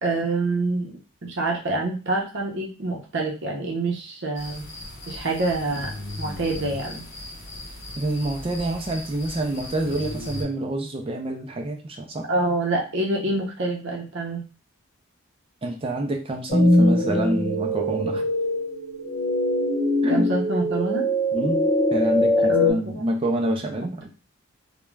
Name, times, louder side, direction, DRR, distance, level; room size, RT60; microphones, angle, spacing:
voice 1, 0.0-0.9 1.2-4.7 5.1-5.9 6.2-7.0 12.3-14.4 20.1-21.1 22.5-23.0 23.8-23.9, right 2 dB, 55° right, -1 dB, 0.7 m, -26 dB
sound 1, 4.3-10.4, left 1 dB, 55° left, 0.7 m, -37 dB
voice 2, 8.0-12.2 15.6-18.3 20.0-20.3 21.3-21.6 21.9-24.1, right 1 dB, 25° right, 2 dB, 0.4 m, -27 dB
sound 2, 16.5-22.7, left 1 dB, 30° left, 1.1 m, -22 dB
2.3 x 2.1 x 3.1 m, 0.34 s
head